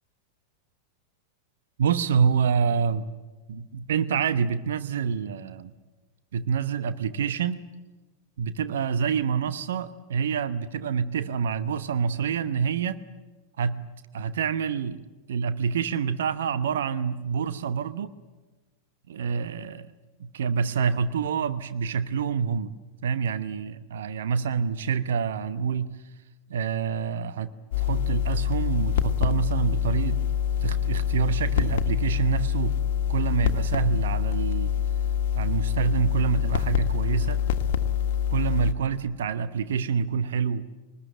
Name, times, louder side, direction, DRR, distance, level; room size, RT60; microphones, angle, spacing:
voice 1, 1.8-3.0 3.5-5.7 6.3-7.6 8.4-13.0 13.6-13.9 14.1-15.0 15.3-18.1 19.1-19.9 20.2-22.7 23.0-26.0 26.5-27.5 27.8-30.2 30.6-32.8 33.1-34.7 35.3-37.4 38.3-40.7, right 6 dB, 60° right, 13 dB, 1.0 m, -27 dB
sound 1, 27.7-38.7, left 9 dB, 50° left, 1.5 m, -25 dB
24.0 x 20.0 x 9.0 m, 1.2 s
figure-of-eight pair, 90°, 0 cm